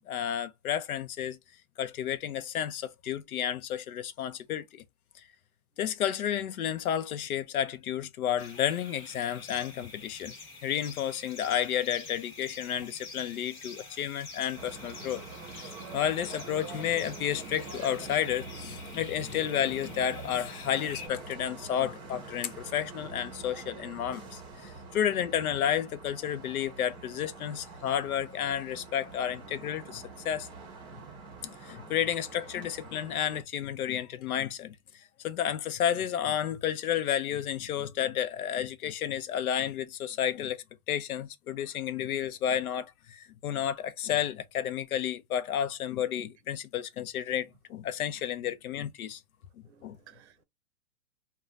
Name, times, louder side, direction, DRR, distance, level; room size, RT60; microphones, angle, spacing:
voice 1, 0.1-1.4 1.8-4.8 5.8-10.3 10.6-15.2 15.9-30.5 30.9-31.0 31.6-34.8 35.2-49.2 49.8-50.0, left 10 dB, 85° left, 0.7 m, -31 dB
sound 1, 8.4-21.1, left 3 dB, 35° left, 1.1 m, -47 dB
sound 2, 14.5-33.4, right 4 dB, 10° right, 0.7 m, -45 dB
voice 2, 30.9-31.3 49.7-50.4, right 10 dB, 50° right, 0.6 m, -56 dB
2.5 x 2.2 x 3.1 m
hypercardioid pair, 155°, 42 cm